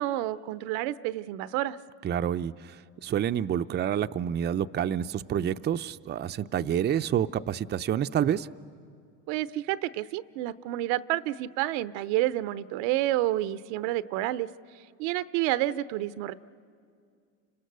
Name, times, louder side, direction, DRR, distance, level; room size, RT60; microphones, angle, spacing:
voice 1, 0.0-1.8 9.3-14.5 15.0-16.3, right 15 dB, 80° right, 16 dB, 0.7 m, -29 dB
voice 2, 2.0-8.5, right 9 dB, 30° right, 10 dB, 0.5 m, -28 dB
29.5 x 25.5 x 6.8 m, 2.3 s
supercardioid pair, 85°, 33 cm